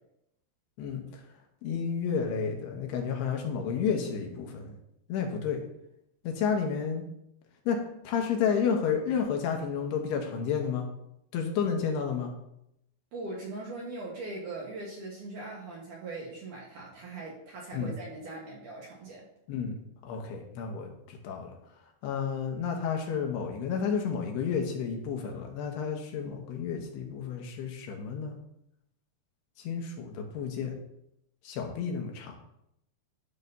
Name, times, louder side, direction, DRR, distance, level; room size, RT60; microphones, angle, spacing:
voice 1, 1.6-4.8 5.1-5.6 6.2-7.0 7.7-7.8 8.0-10.9 11.3-12.3 17.7-17.9 19.5-19.8 20.0-21.5 22.0-28.4 29.6-30.7 31.4-32.4, left 6 dB, 75° left, 2 dB, 2.9 m, -31 dB
voice 2, 13.1-19.3, right 2 dB, 65° right, -3 dB, 2.2 m, -40 dB
12.0 x 6.4 x 2.7 m, 0.79 s
omnidirectional pair, 5.0 m